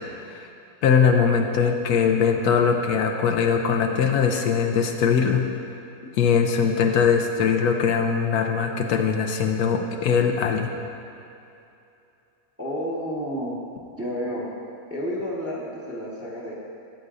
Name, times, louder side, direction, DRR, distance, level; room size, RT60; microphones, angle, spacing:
voice 1, 0.8-5.5 6.2-10.7, left 6 dB, 85° left, 3 dB, 1.2 m, -21 dB
voice 2, 12.6-13.6 14.0-14.5 14.9-16.5, equal, 10° right, -5 dB, 1.0 m, -30 dB
13.0 x 8.1 x 2.5 m, 2.7 s
omnidirectional pair, 1.6 m